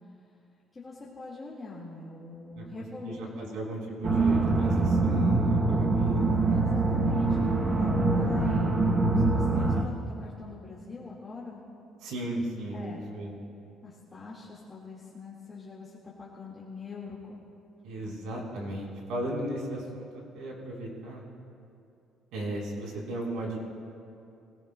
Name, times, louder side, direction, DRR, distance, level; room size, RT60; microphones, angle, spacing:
voice 1, 0.7-3.3 6.5-11.6 12.7-13.0 13.8-15.9 16.2-17.4 18.0-18.2, left 3 dB, 20° left, -7 dB, 1.8 m, -42 dB
voice 2, 2.6-6.3 9.5-10.0 12.0-13.3 17.8-20.1 20.3-21.2 22.3-23.6, right 1 dB, 85° right, -2 dB, 3.8 m, -35 dB
sound 1, 4.0-9.8, right 3 dB, 25° right, 0.8 m, -24 dB
25.0 x 17.5 x 2.2 m, 2.6 s
cardioid pair, 170°, 0 cm